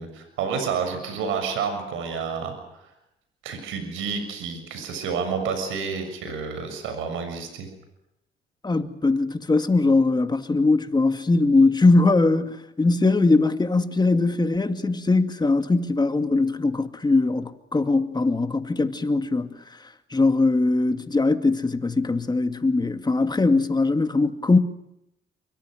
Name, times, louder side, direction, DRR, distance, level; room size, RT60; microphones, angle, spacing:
voice 1, 0.0-2.5 3.4-7.7, right 6 dB, 90° right, 6.8 m, -29 dB
voice 2, 8.6-19.5 20.1-24.6, left 3 dB, 20° left, 2.3 m, -21 dB
28.5 x 24.5 x 6.4 m
cardioid pair, 90°, 20 cm